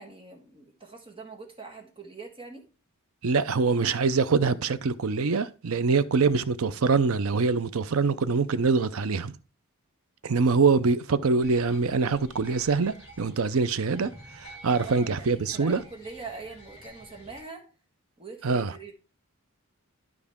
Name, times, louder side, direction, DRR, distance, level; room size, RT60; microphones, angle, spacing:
voice 1, 0.0-2.6 14.8-17.7 18.2-18.9, right 4 dB, 25° right, 1.7 m, -43 dB
voice 2, 3.2-9.3 10.2-14.1 14.4-15.8 18.4-18.7, right 4 dB, 75° right, 0.6 m, -24 dB
sound 1, 11.4-17.4, equal, 25° left, 3.4 m, -50 dB
12.0 x 4.8 x 3.6 m
head